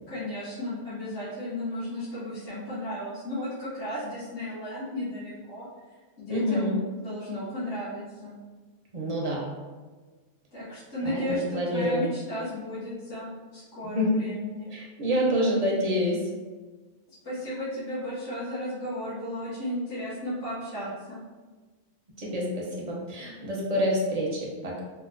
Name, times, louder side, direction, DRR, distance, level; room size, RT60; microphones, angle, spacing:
voice 1, 0.1-5.7 6.2-6.7 7.0-8.4 10.5-14.7 17.2-21.2, left 1 dB, 65° left, -13 dB, 1.5 m, -34 dB
voice 2, 6.3-6.8 8.9-9.4 11.0-12.1 13.8-14.2 14.7-16.2 22.2-24.8, equal, 45° right, -3 dB, 0.5 m, -27 dB
3.8 x 2.2 x 2.5 m, 1.3 s
omnidirectional pair, 1.3 m